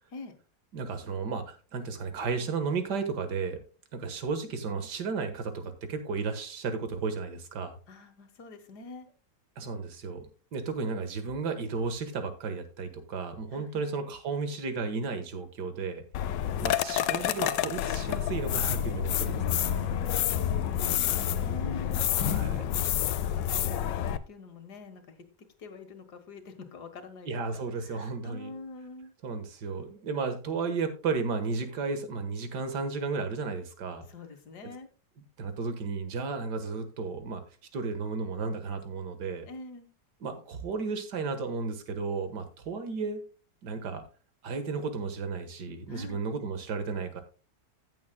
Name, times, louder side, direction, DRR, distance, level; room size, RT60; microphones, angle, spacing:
voice 1, 0.7-3.6 3.9-7.8 9.6-10.3 10.5-16.0 16.6-19.6 22.0-22.7 27.3-28.5 29.2-34.1 35.4-37.4 37.7-39.5 40.2-43.2 43.6-44.0 44.4-47.2, right 4 dB, 70° right, 8 dB, 2.0 m, -33 dB
voice 2, 7.9-9.1 13.5-13.8 19.9-20.0 20.5-25.0 25.6-29.1 34.1-34.9 39.5-39.9 45.9-46.3, left 3 dB, 65° left, 8 dB, 2.0 m, -46 dB
sound 1, 16.1-24.2, left 10 dB, 90° left, 1.3 m, -28 dB
sound 2, 19.1-23.9, right 8 dB, 45° right, 2.3 m, -48 dB
15.5 x 7.3 x 2.2 m, 0.36 s
omnidirectional pair, 1.9 m